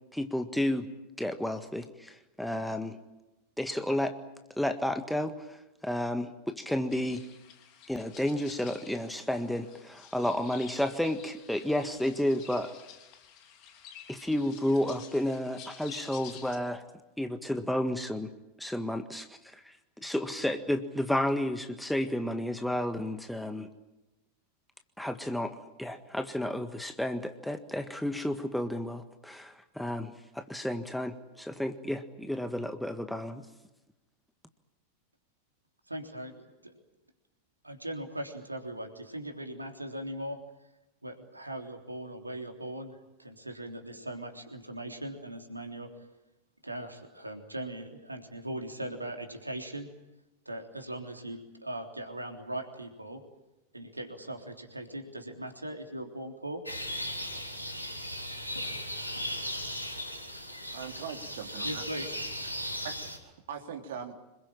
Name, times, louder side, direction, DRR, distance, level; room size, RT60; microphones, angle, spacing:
voice 1, 0.1-0.9 1.2-3.0 3.6-4.1 4.6-5.6 5.8-7.2 7.9-12.7 14.1-16.8 17.2-18.3 18.6-23.7 25.0-33.5, left 1 dB, ahead, 8 dB, 1.6 m, -32 dB
sound 1, 6.9-16.6, left 9 dB, 40° left, 3.4 m, -51 dB
voice 2, 35.9-36.8 37.6-40.4 41.0-45.9 46.6-49.9 50.5-53.2 53.7-56.6 61.6-62.1, right 1 dB, 85° right, 4 dB, 3.4 m, -39 dB
sound 2, 56.7-63.2, equal, 85° left, 3.6 m, -37 dB
voice 3, 60.7-61.8 62.8-64.1, right 7 dB, 60° right, 5 dB, 3.3 m, -41 dB
26.5 x 22.0 x 8.9 m, 0.98 s
figure-of-eight pair, 90°, 0 cm